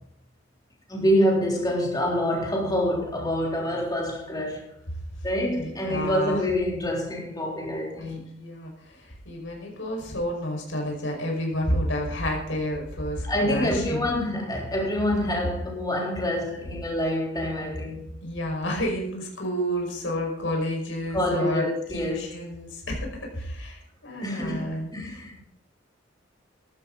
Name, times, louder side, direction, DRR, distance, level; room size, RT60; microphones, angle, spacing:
voice 1, 0.9-4.7 5.2-8.2 13.2-18.0 21.1-22.2 24.2-25.3, equal, 20° left, -2 dB, 3.6 m, -26 dB
voice 2, 5.5-6.4 8.0-14.1 16.5-16.6 18.2-25.4, equal, 90° left, 0 dB, 5.4 m, -30 dB
15.5 x 13.0 x 4.0 m, 0.73 s
head